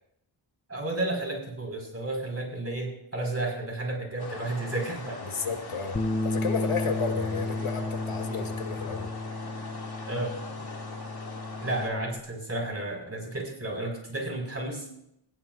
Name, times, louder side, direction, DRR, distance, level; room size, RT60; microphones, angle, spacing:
voice 1, 0.7-5.2 10.1-10.3 11.6-14.8, right 2 dB, 30° right, 1 dB, 5.6 m, -32 dB
sound 1, 4.2-11.9, left 3 dB, 50° left, 2.7 m, -41 dB
voice 2, 5.2-9.1, left 5 dB, 85° left, 3 dB, 1.9 m, -32 dB
Bass guitar, 5.9-12.2, left 2 dB, 15° left, 0.5 m, -33 dB
20.5 x 15.0 x 2.6 m, 0.77 s
cardioid pair, 55°, 49 cm